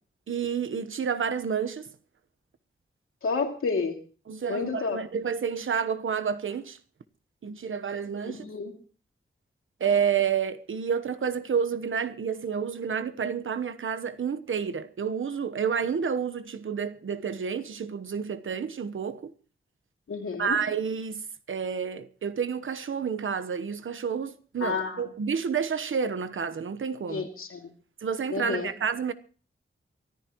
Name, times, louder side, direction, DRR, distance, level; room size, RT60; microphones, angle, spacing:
voice 1, 0.3-1.8 4.3-6.8 7.4-8.5 9.8-19.3 20.4-27.3 28.0-29.1, right 7 dB, 75° right, 1.1 m, -29 dB
voice 2, 3.2-4.0 4.5-5.0 8.2-8.7 20.1-20.6 24.6-25.1 27.1-27.7 28.3-28.7, left 4 dB, 85° left, 2.7 m, -30 dB
23.5 x 14.0 x 3.1 m
wide cardioid pair, 125°, 21 cm